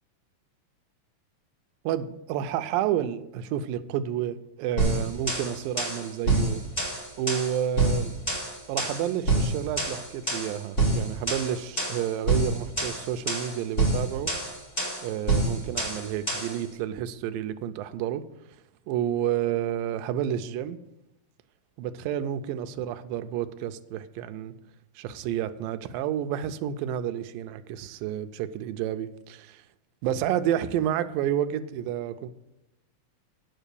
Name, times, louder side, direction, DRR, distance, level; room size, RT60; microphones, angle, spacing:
voice 1, 1.8-6.6 7.2-8.2 8.7-14.3 15.0-18.2 18.9-20.8 21.8-24.5 25.0-29.6 30.0-32.3, right 10 dB, 80° right, 10 dB, 2.3 m, -30 dB
sound 1, 4.8-16.6, right 2 dB, 15° left, 2.9 m, -27 dB
9.0 x 7.3 x 6.9 m, 0.87 s
omnidirectional pair, 4.2 m